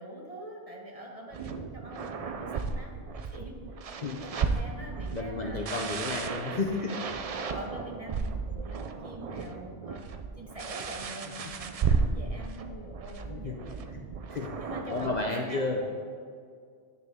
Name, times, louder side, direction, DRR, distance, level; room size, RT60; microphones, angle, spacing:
voice 1, 0.0-6.7 7.3-10.0 10.4-13.9 14.6-15.6, right 1 dB, 30° right, -1 dB, 1.2 m, -44 dB
sound 1, 1.3-15.2, right 5 dB, 55° right, 0.4 m, -34 dB
voice 2, 5.1-7.0 13.2-13.6 13.9-14.6 14.9-16.0, left 3 dB, 45° left, 1 dB, 0.7 m, -32 dB
10.0 x 6.6 x 3.6 m, 2.1 s
omnidirectional pair, 1.2 m